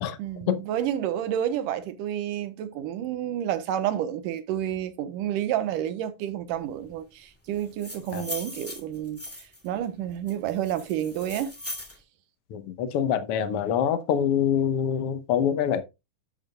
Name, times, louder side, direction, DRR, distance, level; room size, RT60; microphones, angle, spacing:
voice 1, 0.2-9.2 9.6-11.5, right 11 dB, 75° right, 2.5 m, -30 dB
sound 1, 7.6-9.7 10.3-12.0, left 1 dB, 5° left, 1.1 m, -39 dB
voice 2, 12.5-15.8, left 8 dB, 75° left, 1.3 m, -25 dB
11.0 x 8.1 x 2.3 m
omnidirectional pair, 4.0 m